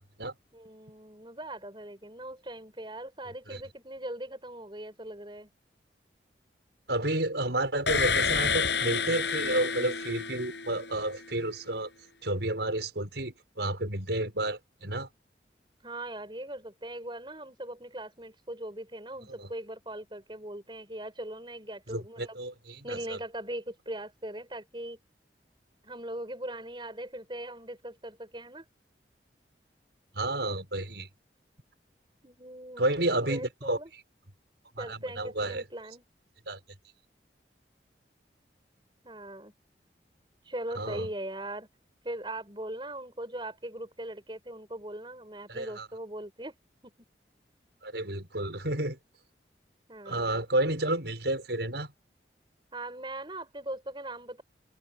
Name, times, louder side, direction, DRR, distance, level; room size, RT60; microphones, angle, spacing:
voice 1, 0.5-5.5 15.8-22.4 22.8-25.0 25.8-28.6 32.2-33.9 34.8-36.0 39.0-39.5 40.5-41.7 42.0-46.5 46.8-46.9 49.9-50.4 52.7-54.4, right 1 dB, 25° right, 6.1 m, -40 dB
voice 2, 6.9-11.9 12.2-15.1 19.4-19.5 21.9-23.2 30.2-31.1 32.8-33.8 34.8-35.6 36.5-36.6 40.7-41.1 45.5-45.9 47.8-49.0 50.1-51.9, right 1 dB, 75° right, 5.7 m, -31 dB
sound 1, 7.9-11.0, left 5 dB, 75° left, 7.4 m, -29 dB
head